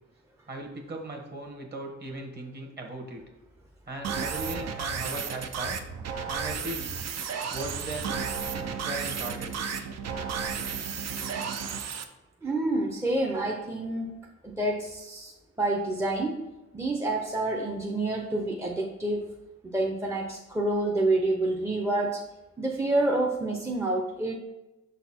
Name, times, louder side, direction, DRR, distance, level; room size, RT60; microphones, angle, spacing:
voice 1, 0.5-3.2 3.9-5.8 6.3-6.9 7.5-8.1 8.8-9.6, right 1 dB, 35° right, 1 dB, 1.4 m, -37 dB
sound 1, 4.0-12.0, right 6 dB, 60° right, 0.6 m, -33 dB
voice 2, 12.4-14.1 14.4-15.3 15.6-16.4 16.7-19.3 19.7-22.2 22.6-24.3, right 2 dB, 10° right, 0 dB, 0.6 m, -28 dB
6.5 x 4.1 x 4.2 m, 1.0 s
cardioid pair, 120°, 29 cm